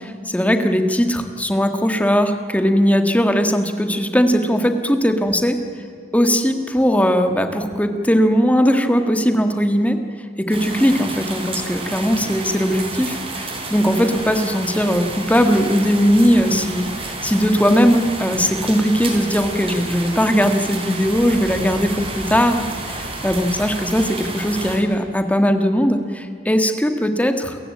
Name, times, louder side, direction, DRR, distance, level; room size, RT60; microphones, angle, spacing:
voice 1, 0.0-5.6 6.1-10.0 10.4-27.6, equal, 10° left, 7 dB, 1.8 m, -19 dB
sound 1, 10.5-24.8, right 2 dB, 30° right, 4.1 m, -30 dB
29.0 x 15.0 x 8.7 m, 2.4 s
head